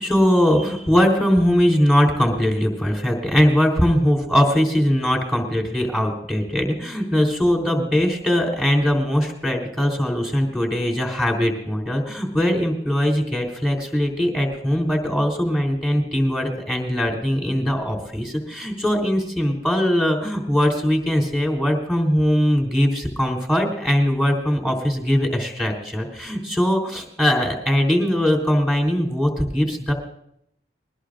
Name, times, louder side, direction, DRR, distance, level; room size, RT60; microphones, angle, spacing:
voice 1, 0.0-29.9, equal, 5° right, 1 dB, 3.6 m, -21 dB
21.5 x 20.0 x 2.5 m, 0.72 s
head